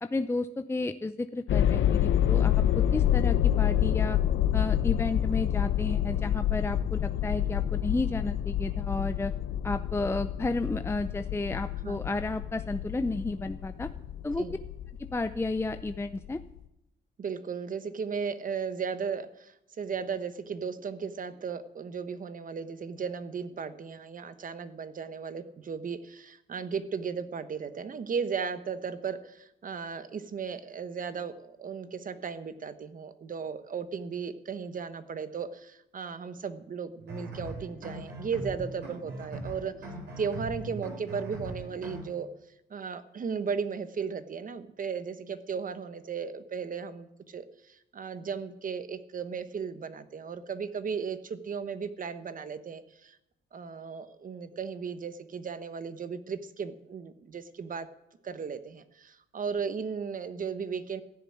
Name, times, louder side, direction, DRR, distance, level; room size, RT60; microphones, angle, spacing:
voice 1, 0.0-4.2 4.5-9.3 9.6-13.9 14.2-14.5 15.0-16.4, left 2 dB, 10° left, 10 dB, 0.6 m, -32 dB
sound 1, 1.5-16.6, left 11 dB, 75° left, 0.8 m, -28 dB
voice 2, 17.2-39.7 40.2-42.3 42.7-53.2 53.5-57.9 58.2-61.0, right 6 dB, 45° right, 12 dB, 1.2 m, -36 dB
sound 2, 37.0-42.0, right 2 dB, 60° right, 7.2 m, -40 dB
15.5 x 7.1 x 10.0 m, 0.86 s
cardioid pair, 90°, 20 cm